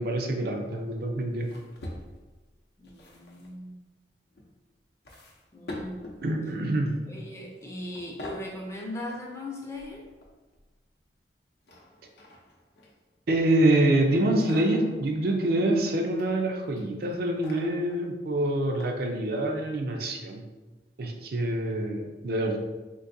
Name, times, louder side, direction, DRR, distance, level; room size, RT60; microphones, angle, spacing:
voice 1, 0.0-1.5 6.2-7.0 13.3-20.4 21.0-22.6, right 1 dB, 60° right, 3 dB, 0.4 m, -26 dB
sound 1, 1.4-2.4 2.8-3.5 4.3-4.5 5.0-6.2 6.9-7.2 7.5-7.6 7.9-8.5 9.7-10.6 11.6-13.2 14.1-15.0 15.8-16.3 16.7-18.0 18.8-18.9 19.5-19.6, left 1 dB, 65° left, 0.6 m, -44 dB
voice 2, 2.8-3.8 5.5-6.2 7.1-10.0, left 1 dB, 15° left, -2 dB, 0.5 m, -39 dB
3.8 x 2.6 x 2.6 m, 1.2 s
head